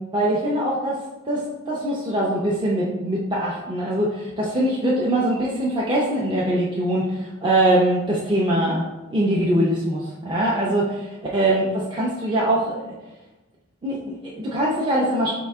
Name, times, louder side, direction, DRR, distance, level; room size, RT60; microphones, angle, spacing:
voice 1, 0.1-8.8 9.1-11.1 11.3-12.8 13.8-15.3, right 1 dB, 20° right, -5 dB, 0.5 m, -22 dB
4.5 x 2.7 x 3.4 m, 1.1 s
head